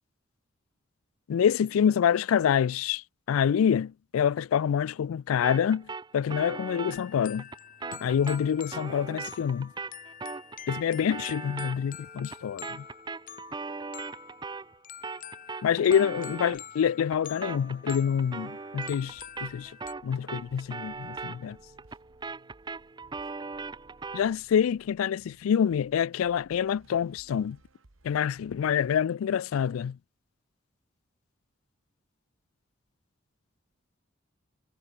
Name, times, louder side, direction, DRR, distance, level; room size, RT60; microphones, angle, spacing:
voice 1, 1.3-7.5 7.9-9.7 10.7-12.8 15.6-19.7 20.0-21.6 24.1-27.6 28.0-30.0, left 8 dB, 85° left, 0.3 m, -26 dB
sound 1, 5.4-14.8 15.0-24.3, right 4 dB, 20° right, 0.5 m, -40 dB
sound 2, 6.9-19.9, left 9 dB, 40° left, 2.3 m, -47 dB
sound 3, 19.1-29.0, right 2 dB, 75° right, 1.5 m, -60 dB
head